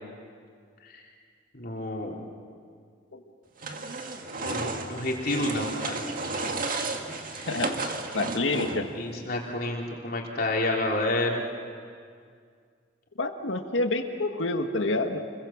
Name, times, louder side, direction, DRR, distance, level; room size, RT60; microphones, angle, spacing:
voice 1, 1.5-2.1 4.4-6.4 7.3-7.5 8.9-11.5, left 2 dB, 55° left, -1 dB, 3.5 m, -30 dB
sound 1, 3.6-9.0, right 3 dB, 50° right, 2.0 m, -33 dB
voice 2, 7.5-7.8 8.1-8.9 13.2-15.2, left 2 dB, 85° left, 5 dB, 1.8 m, -28 dB
29.5 x 22.5 x 7.3 m, 2.2 s
head